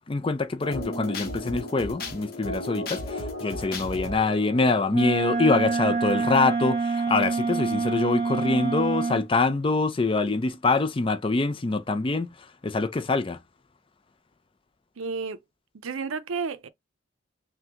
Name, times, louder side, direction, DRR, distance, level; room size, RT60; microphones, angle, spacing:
voice 1, 0.1-12.3 12.6-13.4, left 3 dB, 25° left, 0.4 m, -25 dB
sound 1, 0.6-6.1, left 1 dB, 45° left, 0.9 m, -35 dB
Wind instrument woodwind instrument, 4.9-9.3, right 4 dB, 30° right, 1.1 m, -26 dB
voice 2, 15.0-15.4 15.8-16.7, right 4 dB, 80° right, 0.5 m, -31 dB
5.9 x 2.2 x 2.8 m
head